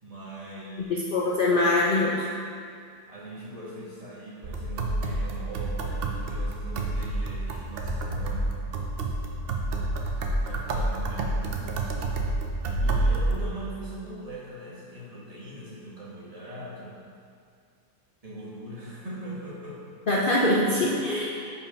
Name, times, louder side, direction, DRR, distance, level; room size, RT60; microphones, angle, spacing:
voice 1, 0.0-1.0 3.1-8.6 10.4-12.0 12.6-17.0 18.2-19.8, right 1 dB, 25° right, -8 dB, 1.4 m, -41 dB
voice 2, 0.9-2.3 20.1-21.3, left 2 dB, 70° left, -4 dB, 0.5 m, -23 dB
Table Drums, 4.4-13.4, right 2 dB, 85° right, 0.5 m, -28 dB
5.3 x 5.1 x 5.2 m, 2.3 s
omnidirectional pair, 1.7 m